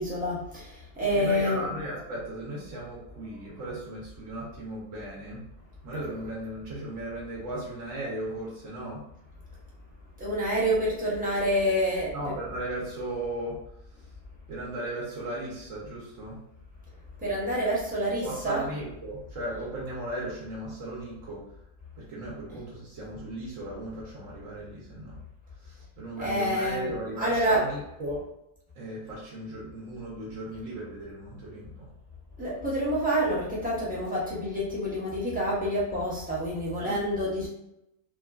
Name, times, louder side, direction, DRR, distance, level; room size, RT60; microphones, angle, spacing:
voice 1, 0.0-1.6 6.0-6.1 10.2-12.3 17.2-18.7 22.5-22.6 26.2-27.7 32.4-37.5, equal, 10° right, -8 dB, 0.4 m, -28 dB
voice 2, 1.0-5.4 5.8-9.0 12.1-13.6 14.5-16.4 18.2-21.4 22.0-25.2 26.0-28.2 28.8-31.9 36.8-37.0, right 1 dB, 65° right, -5 dB, 1.1 m, -36 dB
2.9 x 2.3 x 2.3 m, 0.85 s
omnidirectional pair, 1.6 m